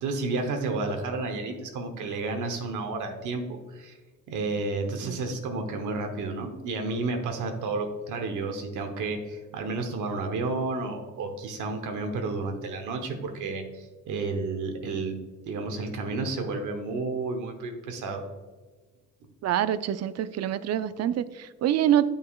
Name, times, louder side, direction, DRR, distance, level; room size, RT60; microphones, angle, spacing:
voice 1, 0.0-4.0 4.3-15.1 15.5-18.2, right 3 dB, 80° right, 4 dB, 1.1 m, -31 dB
voice 2, 19.4-22.1, right 11 dB, 60° right, 14 dB, 0.4 m, -26 dB
9.2 x 5.2 x 2.3 m, 1.3 s
cardioid pair, 90°, 30 cm